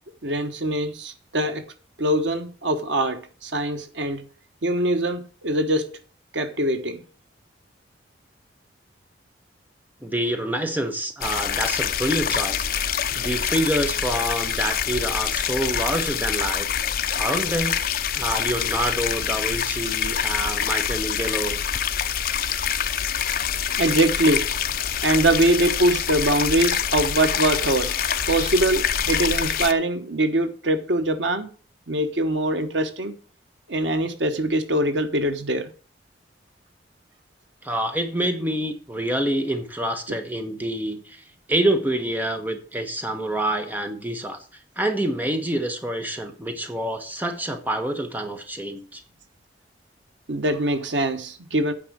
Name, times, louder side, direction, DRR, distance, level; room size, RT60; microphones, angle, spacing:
voice 1, 0.2-1.6 2.0-4.2 4.6-5.9 6.3-7.0 23.8-24.5 25.0-31.5 31.9-33.2 33.7-35.7 50.3-51.7, right 1 dB, 90° right, 1.2 m, -23 dB
voice 2, 10.0-12.7 13.1-16.7 17.1-17.8 18.1-21.6 37.6-44.4 44.8-49.0, right 1 dB, 10° right, 1.1 m, -27 dB
sound 1, 11.2-29.7, left 8 dB, 50° left, 0.6 m, -25 dB
8.8 x 5.1 x 7.7 m
head